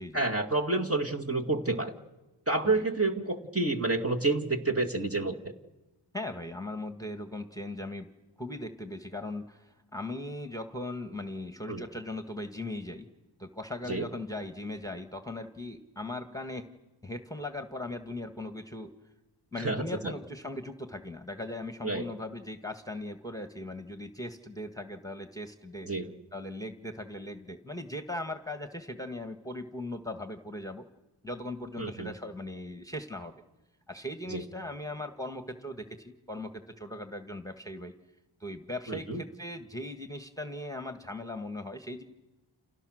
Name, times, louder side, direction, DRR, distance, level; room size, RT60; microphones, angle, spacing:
voice 1, 0.1-1.9 2.5-5.3 11.7-11.8 13.9-14.1 19.6-20.1 21.8-22.0 25.9-26.1 31.8-32.1 34.3-34.4 38.9-39.2, right 2 dB, 30° right, 1 dB, 2.2 m, -29 dB
voice 2, 6.1-8.1 8.4-13.1 13.4-16.7 17.0-18.9 19.5-25.9 26.3-30.9 31.2-33.4 33.9-37.9 38.4-42.0, left 1 dB, 5° left, 7 dB, 1.6 m, -39 dB
30.0 x 28.5 x 6.5 m, 1.1 s
wide cardioid pair, 55°, 49 cm